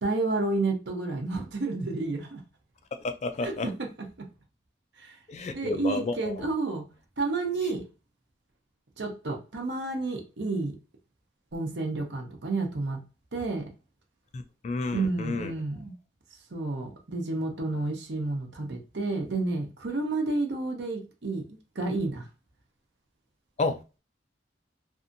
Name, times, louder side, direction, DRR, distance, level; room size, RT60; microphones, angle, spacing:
voice 1, 0.0-2.4 3.4-4.1 5.0-5.1 5.5-6.8 7.2-7.8 9.0-10.7 11.5-13.0 13.3-13.6 14.9-15.9 16.5-21.4 21.8-22.3, right 3 dB, 70° right, 0.7 m, -30 dB
voice 2, 3.0-3.7 5.3-6.3 14.3-15.5 23.6-23.8, left 3 dB, 40° left, 0.3 m, -31 dB
2.6 x 2.5 x 2.5 m
head